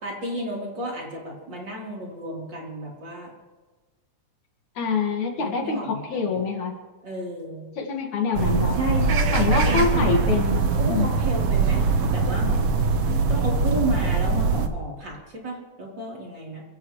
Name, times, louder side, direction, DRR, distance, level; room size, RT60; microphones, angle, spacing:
voice 1, 0.0-3.3 5.4-6.2 7.0-7.7 8.7-10.1 10.8-11.8 12.1-15.2 15.4-16.6, right 1 dB, 35° right, -3 dB, 4.3 m, -32 dB
voice 2, 4.8-6.7 7.8-8.8 9.3-11.1, left 4 dB, 70° left, 1 dB, 3.3 m, -25 dB
sound 1, 8.3-14.7, right 4 dB, 60° right, 1.8 m, -22 dB
27.5 x 16.5 x 3.2 m, 1.3 s
omnidirectional pair, 3.5 m